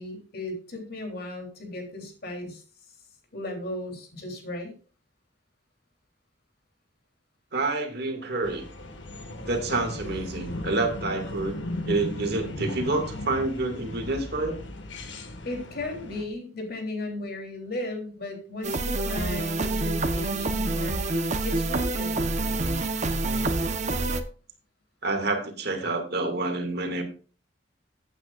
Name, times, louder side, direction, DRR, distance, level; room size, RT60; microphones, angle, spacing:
voice 1, 0.0-2.6 3.3-4.7 15.4-22.2, left 2 dB, 55° left, 3 dB, 3.5 m, -36 dB
voice 2, 7.5-8.6 9.5-11.6 11.9-14.6 25.0-27.0, right 2 dB, 60° right, 4 dB, 2.4 m, -28 dB
sound 1, 8.4-16.2, left 1 dB, 70° left, 1.8 m, -37 dB
sound 2, 18.6-24.2, right 2 dB, 40° right, 1.1 m, -27 dB
15.5 x 9.0 x 2.5 m, 0.37 s
head